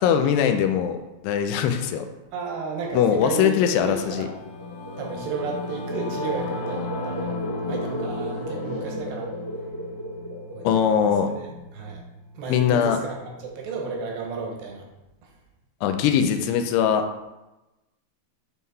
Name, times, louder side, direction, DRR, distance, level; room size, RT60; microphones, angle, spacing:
voice 1, 0.0-1.0 1.2-2.1 2.9-4.3 10.6-11.3 12.5-13.0 15.8-17.1, left 8 dB, 85° left, 7 dB, 2.7 m, -21 dB
voice 2, 2.3-4.3 5.0-7.3 7.7-9.3 10.5-11.5 11.7-12.0 12.3-14.9, right 4 dB, 80° right, 0 dB, 3.2 m, -33 dB
Singing / Musical instrument, 3.9-13.4, left 2 dB, 65° left, 3.5 m, -36 dB
sound 1, 4.6-11.1, equal, 35° left, 0.3 m, -35 dB
9.2 x 3.9 x 4.1 m, 1.0 s
omnidirectional pair, 4.8 m